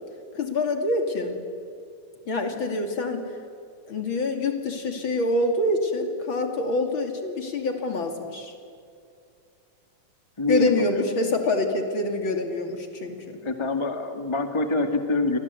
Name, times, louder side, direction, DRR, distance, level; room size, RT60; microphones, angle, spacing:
voice 1, 0.3-1.4 2.3-3.3 3.9-8.5 10.5-13.4, left 2 dB, 40° left, 4 dB, 3.0 m, -26 dB
voice 2, 10.4-11.2 13.4-15.4, left 2 dB, 20° left, 5 dB, 0.8 m, -26 dB
30.0 x 24.0 x 8.3 m, 2.4 s
omnidirectional pair, 3.8 m